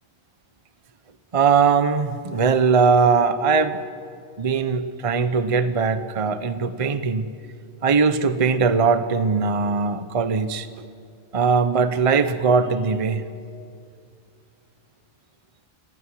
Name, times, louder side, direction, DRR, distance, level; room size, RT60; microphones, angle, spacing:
voice 1, 1.3-3.8 4.4-7.3 7.8-10.8 11.3-13.2, right 5 dB, 30° right, 11 dB, 0.9 m, -20 dB
29.5 x 16.0 x 9.9 m, 2.3 s
omnidirectional pair, 1.4 m